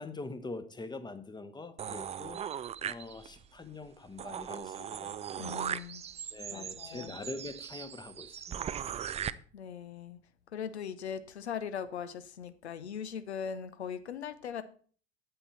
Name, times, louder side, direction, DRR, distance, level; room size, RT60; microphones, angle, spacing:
voice 1, 0.0-2.4 2.8-5.1 6.3-9.3, left 3 dB, 15° left, 11 dB, 1.0 m, -44 dB
sound 1, 1.8-3.5 3.9-4.0 4.2-9.3, right 9 dB, 20° right, 0.4 m, -39 dB
voice 2, 5.4-6.0 6.5-7.2 9.5-10.2 10.5-14.6, left 7 dB, 75° left, 12 dB, 0.9 m, -40 dB
9.0 x 8.5 x 4.2 m, 0.43 s
figure-of-eight pair, 65°, 33 cm